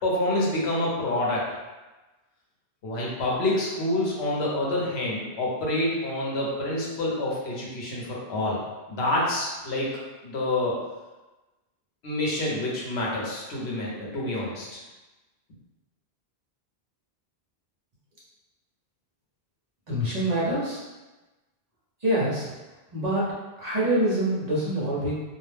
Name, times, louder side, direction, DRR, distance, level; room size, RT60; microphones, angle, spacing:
voice 1, 0.0-1.4 2.8-8.6 8.9-9.9 10.2-10.8 12.0-14.8, left 1 dB, 75° left, -4 dB, 1.0 m, -27 dB
voice 2, 19.9-20.8 22.0-22.5 22.9-23.3 23.6-25.1, right 1 dB, 45° right, -7 dB, 0.7 m, -25 dB
2.4 x 2.1 x 3.2 m, 1.1 s
omnidirectional pair, 1.1 m